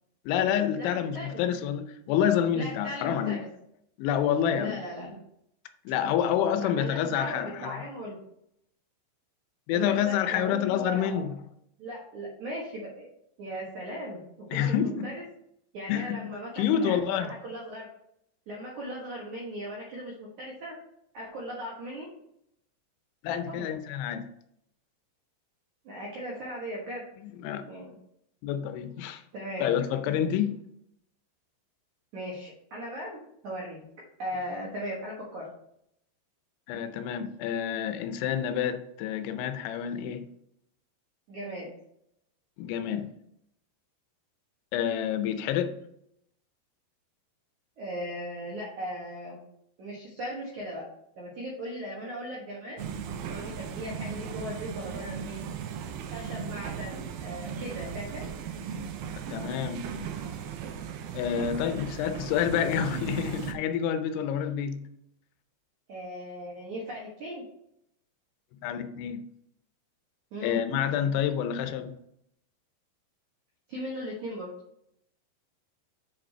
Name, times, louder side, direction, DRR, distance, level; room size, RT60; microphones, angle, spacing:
voice 1, 0.3-3.4 4.0-4.8 5.9-7.8 9.7-11.4 14.5-15.1 15.9-17.3 23.2-24.3 27.2-27.6 28.4-29.2 29.6-30.6 36.7-40.3 42.6-43.1 44.7-45.7 59.2-59.9 61.1-64.8 68.6-69.2 70.4-71.9, left 9 dB, 85° left, 9 dB, 3.1 m, -28 dB
voice 2, 0.8-1.4 2.5-3.5 4.6-5.2 6.6-8.2 9.7-11.3 11.8-13.1 13.4-14.7 15.0-15.2 15.7-17.9 18.5-20.7 21.1-22.1 23.3-23.7 25.9-27.0 27.7-28.0 29.3-29.7 32.1-33.8 34.2-35.5 41.3-41.7 47.8-49.4 49.8-50.8 51.2-52.8 53.3-55.4 56.1-58.3 65.9-67.4 70.3-70.6 73.7-74.5, equal, 65° right, -4 dB, 1.9 m, -38 dB
sound 1, 52.8-63.5, right 7 dB, 85° right, 2.2 m, -37 dB
7.3 x 5.1 x 4.3 m, 0.74 s
omnidirectional pair, 5.3 m